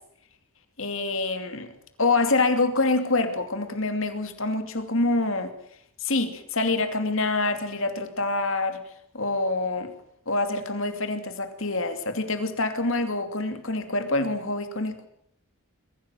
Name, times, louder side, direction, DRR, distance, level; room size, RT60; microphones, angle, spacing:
voice 1, 0.8-1.7 2.0-5.5 6.0-8.8 9.1-9.9 10.3-15.1, left 2 dB, 60° left, 8 dB, 2.7 m, -26 dB
22.5 x 16.0 x 9.1 m, 0.68 s
head